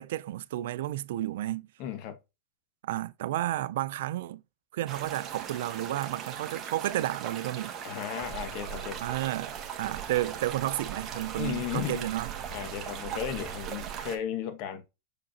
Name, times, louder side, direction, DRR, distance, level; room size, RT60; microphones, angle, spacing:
voice 1, 0.0-1.7 2.8-4.4 4.7-7.7 9.0-12.3, right 14 dB, 70° right, 0.4 m, -32 dB
voice 2, 1.8-2.2 7.8-9.0 11.3-12.1 12.5-14.8, left 9 dB, 50° left, 1.2 m, -35 dB
sound 1, 4.9-14.2, right 8 dB, 30° right, 1.3 m, -39 dB
6.8 x 5.1 x 2.8 m
supercardioid pair, 135°, 0 cm